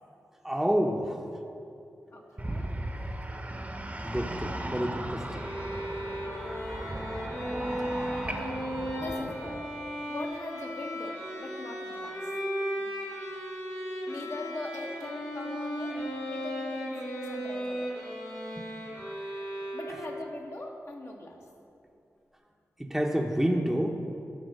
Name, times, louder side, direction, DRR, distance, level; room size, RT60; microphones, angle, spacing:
voice 1, 0.4-1.2 4.0-5.5 22.8-24.0, equal, 5° right, 1 dB, 0.9 m, -28 dB
voice 2, 2.1-2.7 8.2-8.5 9.0-9.7 10.1-12.2 14.1-16.0 16.2-17.9 19.7-21.4, left 1 dB, 55° left, 0 dB, 1.5 m, -41 dB
sound 1, 2.4-9.6, right 1 dB, 25° right, 1.0 m, -36 dB
sound 2, 5.3-20.3, equal, 80° left, 2.1 m, -36 dB
12.5 x 4.2 x 6.5 m, 2.6 s
cardioid pair, 50°, 6 cm